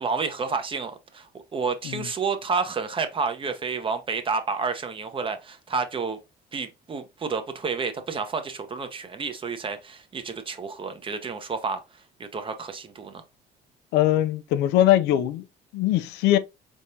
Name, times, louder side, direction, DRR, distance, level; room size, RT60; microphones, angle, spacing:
voice 1, 0.0-6.2 6.5-11.8 12.2-13.2, right 5 dB, 30° right, 0.8 m, -30 dB
voice 2, 13.9-15.4 15.7-16.4, left 13 dB, 90° left, 0.5 m, -21 dB
4.3 x 3.5 x 2.7 m
cardioid pair, 110°, 17 cm